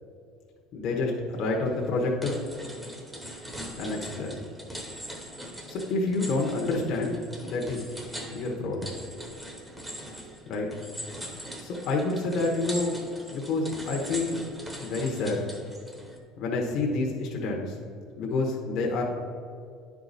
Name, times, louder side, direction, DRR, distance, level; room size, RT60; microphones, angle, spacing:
voice 1, 0.7-2.4 3.8-4.4 5.7-7.9 8.3-8.9 10.5-10.7 11.6-12.9 13.3-14.4 14.8-15.5 16.4-17.7 18.2-19.0, left 3 dB, 55° left, -1 dB, 1.1 m, -28 dB
sound 1, 1.6-1.9 2.2-16.2, equal, 5° right, 1.0 m, -41 dB
9.6 x 4.8 x 4.1 m, 2.3 s
cardioid pair, 130°, 0 cm